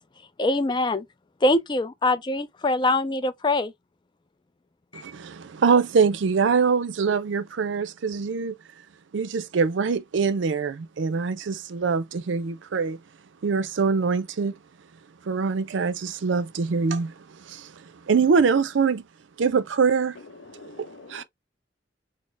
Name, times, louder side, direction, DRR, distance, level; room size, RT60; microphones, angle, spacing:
voice 1, 0.4-1.1 1.4-3.7 4.9-5.0, left 2 dB, 25° left, 0.4 m, -23 dB
voice 2, 4.9-8.6 9.1-13.0 13.4-14.6 15.3-17.1 17.5-17.7 18.1-19.0 19.4-20.2 21.1-21.2, right 5 dB, 80° right, 0.5 m, -23 dB
voice 3, 20.3-21.2, left 3 dB, 85° left, 0.7 m, -45 dB
4.2 x 2.0 x 3.3 m
head